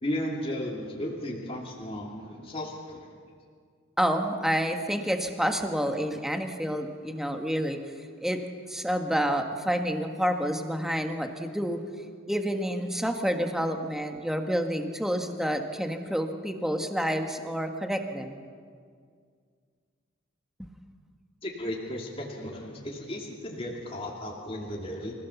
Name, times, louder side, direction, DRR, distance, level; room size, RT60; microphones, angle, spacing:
voice 1, 0.0-3.1 21.4-25.1, left 1 dB, 30° left, -2 dB, 2.7 m, -35 dB
voice 2, 4.0-7.8 8.2-8.4 8.7-11.8 12.3-18.4, equal, ahead, 5 dB, 1.4 m, -29 dB
27.0 x 16.5 x 7.1 m, 2.1 s
head